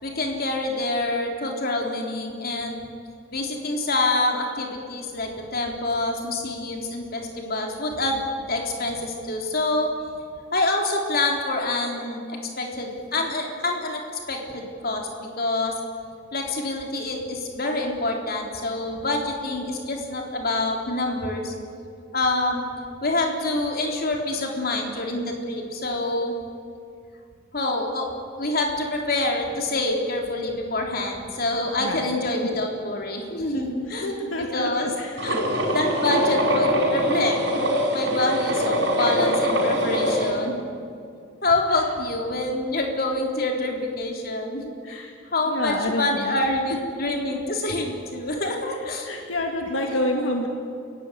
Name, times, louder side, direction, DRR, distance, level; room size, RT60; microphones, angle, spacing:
voice 1, 0.0-2.8 3.3-9.9 10.5-14.0 14.3-15.7 16.3-21.5 22.1-22.6 23.0-26.4 27.5-28.1 28.4-34.9 35.2-37.4 37.9-40.6 41.4-45.0 45.3-49.2 49.7-49.9, left 2 dB, 50° left, 1 dB, 3.8 m, -26 dB
voice 2, 31.8-32.1 33.9-35.2 44.8-45.1 45.4-46.3 49.0-50.5, left 1 dB, 80° left, 2 dB, 2.2 m, -28 dB
sound 1, 35.2-40.3, equal, 65° right, 5.8 m, -23 dB
28.0 x 16.0 x 9.5 m, 2.4 s
head